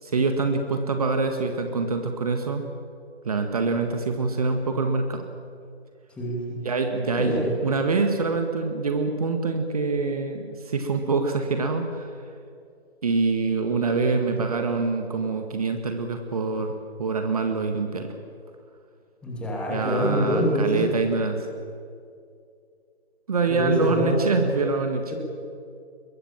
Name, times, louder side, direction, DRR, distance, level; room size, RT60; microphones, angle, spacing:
voice 1, 0.0-2.7 3.2-5.3 6.6-12.1 13.0-18.1 19.7-21.5 23.3-25.1, right 4 dB, 35° right, 5 dB, 1.8 m, -25 dB
voice 2, 6.2-6.6 7.2-7.5 19.2-20.8 23.5-24.2 25.1-25.2, left 1 dB, 5° left, -3 dB, 2.6 m, -25 dB
24.5 x 22.0 x 7.3 m, 2.3 s
figure-of-eight pair, 155°, 33 cm